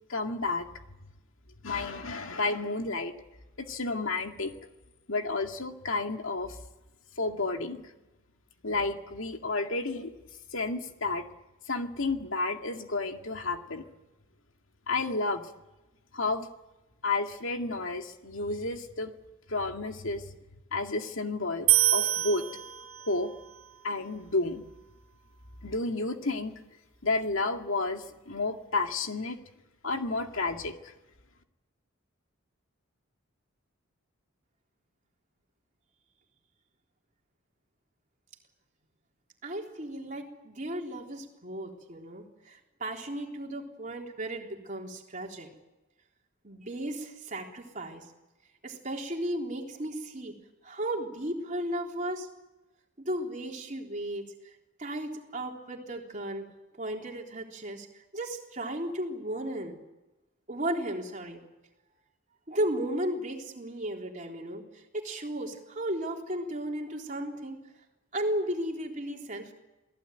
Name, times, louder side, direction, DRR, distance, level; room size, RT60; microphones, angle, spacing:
voice 1, 0.1-0.7 1.6-3.1 3.6-4.5 5.1-6.6 7.2-7.8 8.6-10.1 10.5-11.2 11.7-13.8 14.9-15.5 16.1-16.5 17.0-19.1 19.5-20.2 20.7-22.4 23.1-23.3 23.8-24.6 25.6-26.5 27.0-29.4 29.8-30.9, left 3 dB, 70° left, 5 dB, 2.2 m, -31 dB
sound 1, 21.7-23.3, right 14 dB, 85° right, 1.3 m, -26 dB
voice 2, 39.4-45.5 46.4-48.1 48.6-50.3 50.6-52.3 53.0-54.2 54.8-56.5 56.8-57.9 58.1-59.8 60.5-61.4 62.5-67.6 68.1-69.5, right 1 dB, 35° right, 1 dB, 3.7 m, -35 dB
27.5 x 18.5 x 9.2 m, 1.0 s
head